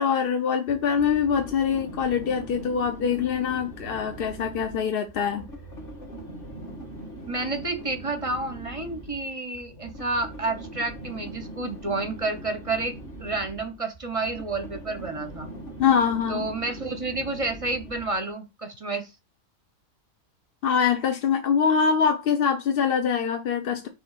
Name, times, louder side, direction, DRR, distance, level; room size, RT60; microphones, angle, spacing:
voice 1, 0.0-5.5 15.8-16.4 20.6-23.9, left 7 dB, 55° left, 0.7 m, -24 dB
sound 1, 0.7-18.3, right 1 dB, 40° left, 1.9 m, -41 dB
voice 2, 7.3-15.5 16.3-19.1, right 3 dB, 30° right, 0.7 m, -30 dB
6.1 x 2.9 x 5.6 m
omnidirectional pair, 1.5 m